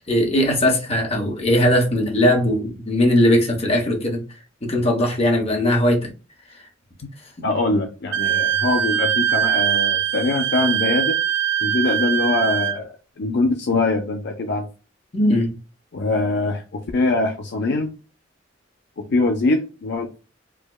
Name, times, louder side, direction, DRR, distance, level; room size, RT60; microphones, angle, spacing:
voice 1, 0.1-4.2 4.6-6.1 15.1-15.5, left 1 dB, 35° left, 1.1 m, -19 dB
voice 2, 7.4-11.2 11.6-14.6 15.9-17.9 19.1-20.2, left 2 dB, 60° left, 0.5 m, -22 dB
Wind instrument woodwind instrument, 8.1-12.8, right 10 dB, 65° right, 0.4 m, -22 dB
4.7 x 2.2 x 2.3 m
head